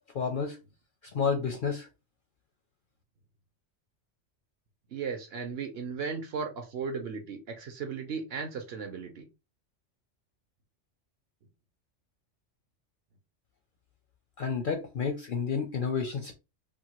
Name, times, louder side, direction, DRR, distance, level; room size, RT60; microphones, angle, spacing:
voice 1, 0.1-0.6 1.1-1.9 14.4-16.3, left 5 dB, 60° left, 0.6 m, -30 dB
voice 2, 4.9-9.3, right 5 dB, 60° right, 0.9 m, -36 dB
2.8 x 2.3 x 2.8 m
omnidirectional pair, 1.3 m